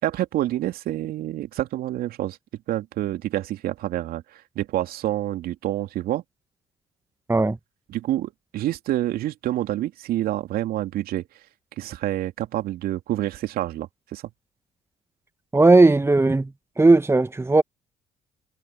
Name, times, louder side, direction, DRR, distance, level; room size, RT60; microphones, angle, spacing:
voice 1, 0.0-2.4 2.7-6.2 7.9-11.2 11.8-14.2, right 14 dB, 65° right, 2.7 m, -27 dB
voice 2, 15.5-16.5 16.8-17.6, right 2 dB, 15° right, 1.5 m, -16 dB
hypercardioid pair, 50°, 17 cm